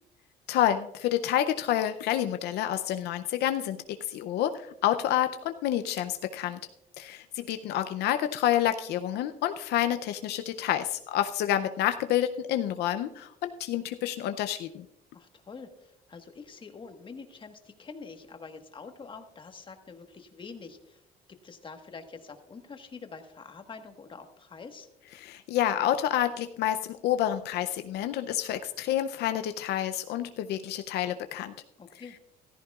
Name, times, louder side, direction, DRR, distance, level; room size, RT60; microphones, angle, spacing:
voice 1, 0.5-3.8 4.1-6.6 7.0-14.9 25.2-31.5, left 11 dB, 75° left, 9 dB, 0.6 m, -28 dB
voice 2, 15.1-21.0 21.3-24.9 31.8-32.1, left 4 dB, 30° left, 6 dB, 1.4 m, -46 dB
14.5 x 14.0 x 2.4 m, 0.85 s
cardioid pair, 110°, 17 cm